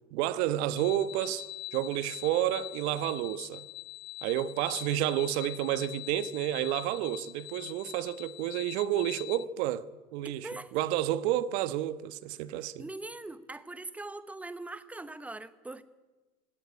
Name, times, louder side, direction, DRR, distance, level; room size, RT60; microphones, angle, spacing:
voice 1, 0.1-1.5 1.7-3.6 4.2-9.8 10.1-12.8, right 12 dB, 45° right, 1.3 m, -30 dB
sound 1, 0.7-9.4, left 20 dB, 60° left, 0.9 m, -43 dB
voice 2, 10.2-10.7 12.8-15.8, right 2 dB, 5° right, 0.8 m, -41 dB
21.0 x 17.0 x 10.0 m
hypercardioid pair, 125°, 44 cm